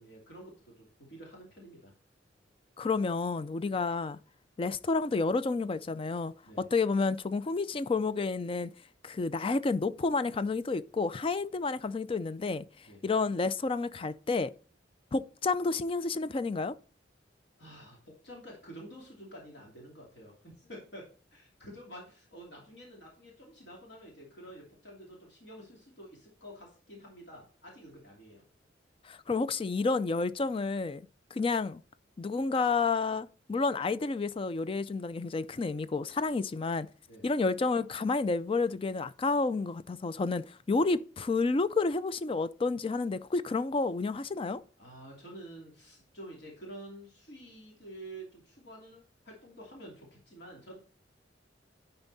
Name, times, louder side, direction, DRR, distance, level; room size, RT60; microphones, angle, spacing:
voice 1, 0.0-1.9 6.4-6.7 12.9-13.0 17.6-21.1 21.3-28.4 37.1-37.2 44.8-50.8, right 1 dB, 65° left, 2.7 m, -49 dB
voice 2, 2.8-4.2 4.6-8.7 9.0-14.5 15.1-16.8 29.0-31.0 31.3-31.8 32.2-36.9 37.2-44.6, left 3 dB, 30° left, 0.4 m, -30 dB
10.5 x 4.4 x 4.0 m
head